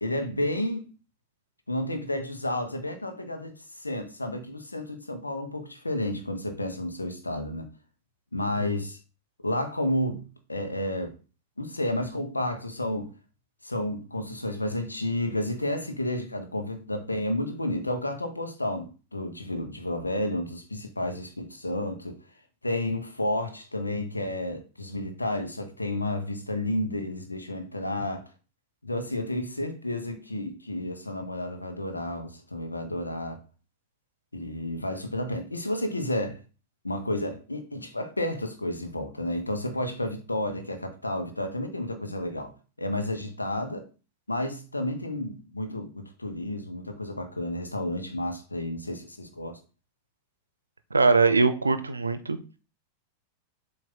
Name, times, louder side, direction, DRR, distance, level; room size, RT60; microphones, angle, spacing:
voice 1, 0.0-0.9 1.7-7.7 8.3-9.0 9.4-10.2 10.5-11.1 11.6-13.1 13.6-22.2 22.6-28.3 28.8-33.4 34.3-36.4 36.8-43.9 44.3-49.6, left 1 dB, 80° left, 1.1 m, -31 dB
voice 2, 50.9-52.4, right 4 dB, 80° right, 0.6 m, -22 dB
7.4 x 2.8 x 5.6 m
figure-of-eight pair, 90°, 0 cm